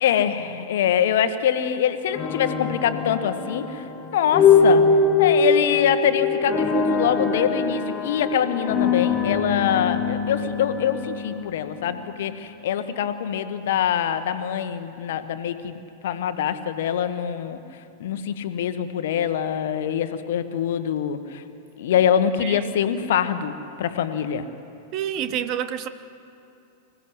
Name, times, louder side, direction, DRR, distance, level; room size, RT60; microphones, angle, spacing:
voice 1, 0.0-4.8 5.2-15.8 16.0-17.6 18.0-21.4 21.8-24.5 25.3-25.4, left 9 dB, 60° left, 10 dB, 1.4 m, -24 dB
sound 1, 2.1-12.2, left 4 dB, 25° left, 2.0 m, -22 dB
voice 2, 24.9-25.9, right 10 dB, 40° right, 11 dB, 1.1 m, -28 dB
25.5 x 16.5 x 8.1 m, 2.7 s
figure-of-eight pair, 95°, 0 cm